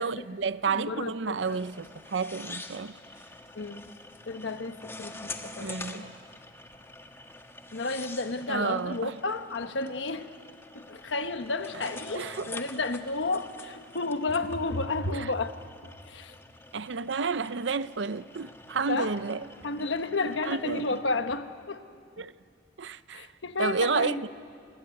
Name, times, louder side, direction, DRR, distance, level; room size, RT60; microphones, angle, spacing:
voice 1, 0.0-3.0 5.6-6.1 8.5-9.2 12.1-12.5 15.1-15.3 16.7-19.5 20.4-20.8 22.2-22.3 22.8-23.3 23.6-24.2, right 5 dB, 70° right, 0.6 m, -31 dB
voice 2, 0.7-1.6 3.5-3.8 4.3-6.1 7.7-10.3 10.7-15.6 16.1-16.4 18.9-19.1 19.6-21.8 23.1-24.3, left 3 dB, 75° left, 1.2 m, -32 dB
sound 1, 1.4-21.0, left 2 dB, 15° left, 1.4 m, -46 dB
27.5 x 21.0 x 9.7 m
head